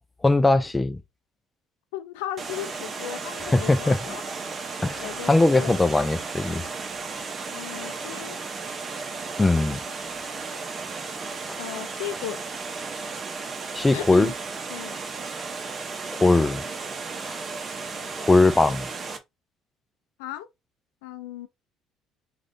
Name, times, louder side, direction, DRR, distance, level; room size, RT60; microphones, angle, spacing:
voice 1, 0.2-1.0 3.5-4.2 4.8-6.6 9.4-9.8 13.7-14.3 16.1-16.6 17.2-17.5 18.2-18.9, left 2 dB, 15° left, 0.5 m, -20 dB
voice 2, 1.9-4.2 5.0-5.8 7.5-8.4 11.6-12.4 13.9-14.3 14.7-14.9 20.2-20.5 21.0-21.5, left 12 dB, 90° left, 0.4 m, -35 dB
Water, 2.4-19.2, right 4 dB, 40° right, 0.8 m, -34 dB
3.4 x 2.4 x 2.6 m
supercardioid pair, 85°, 0 cm